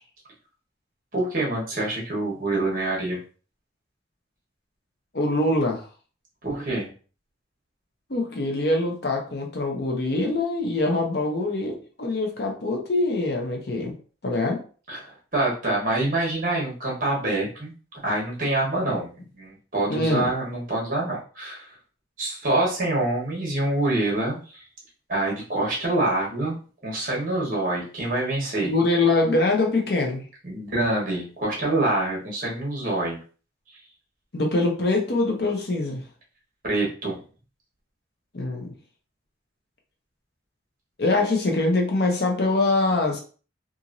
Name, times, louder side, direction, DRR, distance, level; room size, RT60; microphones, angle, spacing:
voice 1, 1.1-3.2 6.4-6.9 14.9-17.7 18.0-21.7 22.2-24.6 25.1-28.7 30.4-33.2 36.6-37.2, right 2 dB, 45° right, -4 dB, 1.2 m, -26 dB
voice 2, 5.1-5.9 8.1-13.9 14.2-14.6 19.9-20.3 28.6-30.2 34.3-36.0 38.3-38.7 41.0-43.2, left 2 dB, 55° left, 1 dB, 0.7 m, -24 dB
2.9 x 2.6 x 2.6 m, 0.38 s
head